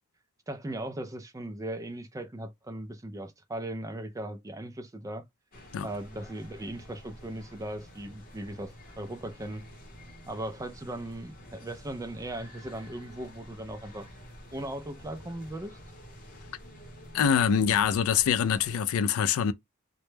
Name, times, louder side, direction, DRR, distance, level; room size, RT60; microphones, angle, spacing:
voice 1, 0.5-5.2 5.8-9.6 10.3-14.1 14.5-15.8, right 1 dB, 15° right, 0.3 m, -38 dB
sound 1, 5.5-18.7, equal, 40° left, 0.8 m, -49 dB
voice 2, 17.1-19.5, left 7 dB, 70° left, 0.3 m, -24 dB
2.1 x 2.0 x 3.1 m
head